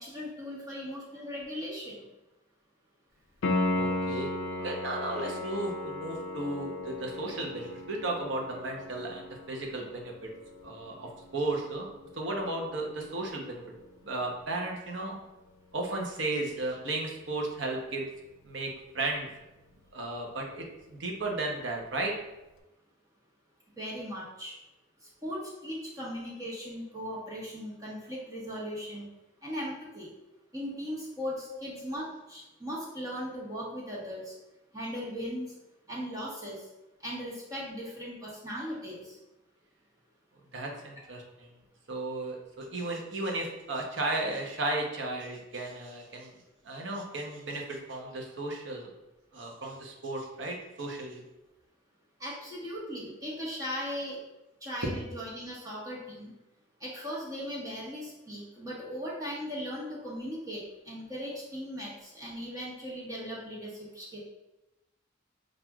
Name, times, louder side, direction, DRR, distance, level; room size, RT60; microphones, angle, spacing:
voice 1, 0.0-2.0 23.8-24.5 25.2-29.0 29.4-30.1 30.5-34.3 34.7-35.5 35.9-36.7 37.0-39.2 52.2-54.2 54.6-56.3 56.8-64.2, equal, 20° right, -6 dB, 1.0 m, -38 dB
Piano, 3.4-14.1 17.4-17.5, left 2 dB, 75° left, 0.5 m, -36 dB
voice 2, 3.7-4.3 4.6-10.3 10.6-11.9 12.1-13.6 14.0-15.2 15.7-18.1 18.4-19.3 19.9-22.1 40.5-41.5 41.9-46.3 46.6-48.9 49.3-51.2, right 2 dB, 65° right, 0 dB, 0.7 m, -34 dB
5.9 x 2.4 x 2.3 m, 0.99 s
head